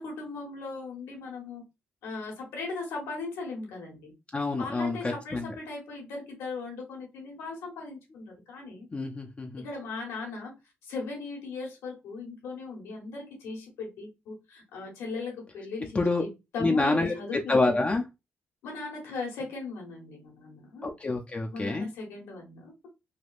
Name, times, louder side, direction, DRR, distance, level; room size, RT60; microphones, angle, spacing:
voice 1, 0.0-1.6 2.0-4.1 4.6-8.9 9.6-10.5 10.8-17.4 17.7-17.8 18.6-20.9 21.5-22.9, left 3 dB, 85° left, 0 dB, 1.3 m, -38 dB
voice 2, 4.3-5.5 8.9-9.6 15.9-16.2 16.6-17.1 17.5-18.0 20.8-21.9, left 3 dB, 30° left, 2 dB, 0.5 m, -27 dB
3.4 x 2.3 x 2.4 m, 0.24 s
supercardioid pair, 70°, 4 cm